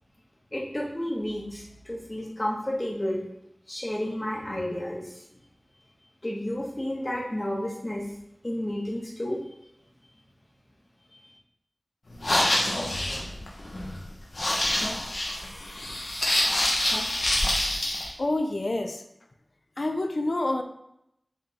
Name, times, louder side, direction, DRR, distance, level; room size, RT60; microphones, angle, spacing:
voice 1, 0.5-3.2 3.7-5.1 6.2-8.1 8.4-9.4 11.1-11.2, left 1 dB, 35° left, -3 dB, 1.7 m, -31 dB
sound 1, 12.1-18.1, left 1 dB, 85° left, 1.3 m, -26 dB
voice 2, 18.2-19.0 19.8-20.6, left 2 dB, 65° left, 5 dB, 0.6 m, -27 dB
7.3 x 3.9 x 3.7 m, 0.79 s
wide cardioid pair, 55°, 0 cm